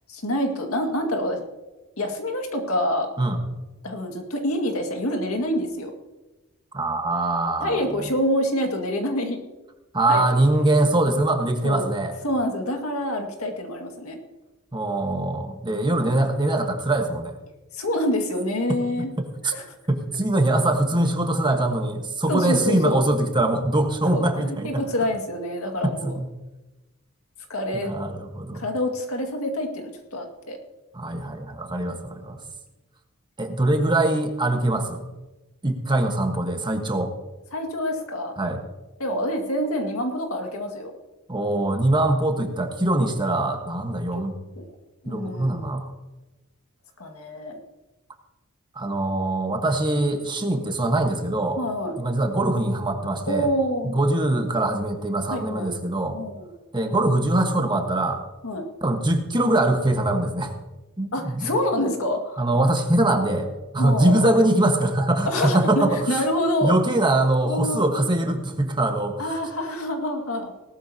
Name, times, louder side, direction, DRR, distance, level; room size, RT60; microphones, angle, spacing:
voice 1, 0.1-1.4 2.0-3.1 3.8-5.9 7.6-9.4 10.1-10.2 11.6-11.8 12.2-14.2 17.7-19.1 19.5-19.6 22.3-23.0 24.1-26.1 27.5-27.9 28.5-30.6 31.7-32.1 37.5-38.3 39.0-40.9 44.6-44.7 45.0-45.7 47.0-47.6 51.6-52.0 53.3-54.0 55.3-55.7 56.1-56.5 58.4-58.7 61.1-62.5 63.8-64.3 65.3-66.8 67.4-67.8 69.2-70.5, left 1 dB, 80° left, 3 dB, 2.1 m, -26 dB
voice 2, 6.7-7.9 9.9-12.1 14.7-17.4 19.2-19.5 19.9-24.8 25.8-26.3 27.7-28.6 30.9-32.4 33.4-35.0 35.6-37.1 38.4-38.6 41.3-44.3 45.1-45.9 48.7-51.6 52.0-53.5 53.8-56.2 56.7-58.2 58.8-60.5 61.0-61.5 62.4-63.5 63.7-66.2 66.6-69.3, right 1 dB, 20° right, 4 dB, 1.4 m, -23 dB
18.0 x 12.5 x 2.9 m, 1.1 s
head